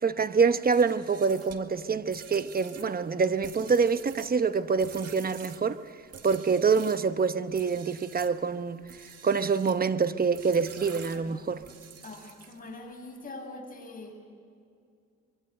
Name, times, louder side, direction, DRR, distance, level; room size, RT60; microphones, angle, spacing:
voice 1, 0.0-5.8 6.2-8.8 9.2-11.6, right 5 dB, 30° right, 1.1 m, -26 dB
sound 1, 0.6-7.1 7.5-8.4 8.8-9.8 10.3-12.7, right 7 dB, 55° right, 2.1 m, -48 dB
voice 2, 12.0-14.1, left 2 dB, 30° left, 7.2 m, -43 dB
24.5 x 24.0 x 8.0 m
cardioid pair, 90°, 30 cm